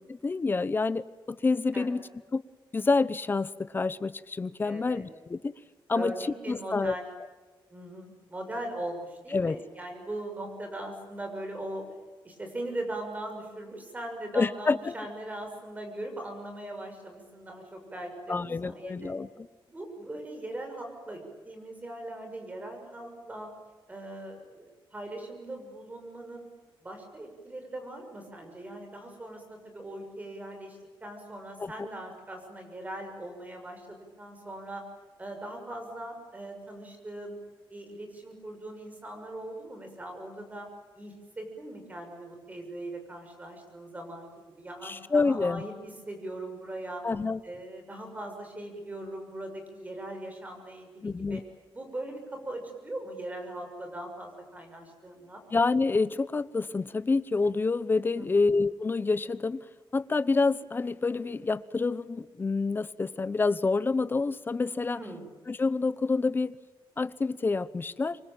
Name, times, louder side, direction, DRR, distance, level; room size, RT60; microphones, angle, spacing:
voice 1, 0.2-2.0 2.3-2.4 2.7-5.5 5.9-6.1 6.5-6.9 9.3-9.6 14.3-14.9 18.3-19.5 31.6-31.9 44.8-45.6 47.0-47.4 51.0-51.4 55.5-59.6 59.9-65.0 65.5-66.6 67.0-68.2, left 3 dB, 25° left, 16 dB, 0.9 m, -27 dB
voice 2, 4.6-5.1 5.9-7.1 7.7-11.9 12.2-19.1 19.7-23.5 23.9-26.5 26.8-34.9 35.2-37.4 37.7-40.7 40.9-44.3 44.6-47.0 47.4-51.4 51.7-55.4 58.1-58.5 65.0-65.2, right 1 dB, 15° right, 4 dB, 6.5 m, -40 dB
26.5 x 23.5 x 9.1 m, 1.3 s
wide cardioid pair, 170°, 9 cm